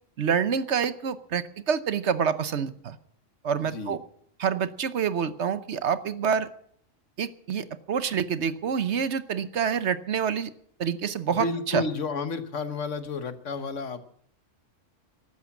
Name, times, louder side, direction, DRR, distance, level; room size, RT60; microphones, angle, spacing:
voice 1, 0.2-3.0 3.4-4.0 4.4-6.5 7.2-10.5 10.8-11.8, right 7 dB, 60° right, 13 dB, 1.1 m, -27 dB
voice 2, 3.6-4.0 11.3-14.1, left 4 dB, 70° left, 10 dB, 1.5 m, -31 dB
14.5 x 12.5 x 7.2 m, 0.64 s
omnidirectional pair, 1.3 m